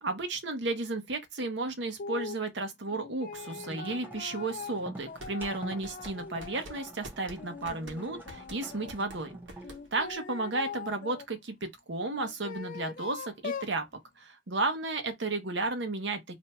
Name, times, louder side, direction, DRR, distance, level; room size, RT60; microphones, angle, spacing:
voice 1, 0.0-9.4 9.9-13.9 14.2-16.4, right 2 dB, 70° right, 0.8 m, -33 dB
sound 1, 2.0-2.4 2.9-6.9 7.4-8.9 9.6-11.3 12.1-13.8, left 5 dB, 45° left, 0.3 m, -42 dB
sound 2, 3.4-9.8, right 2 dB, 10° right, 0.6 m, -48 dB
sound 3, 5.2-10.1, right 1 dB, 90° right, 1.1 m, -48 dB
2.6 x 2.2 x 4.1 m
head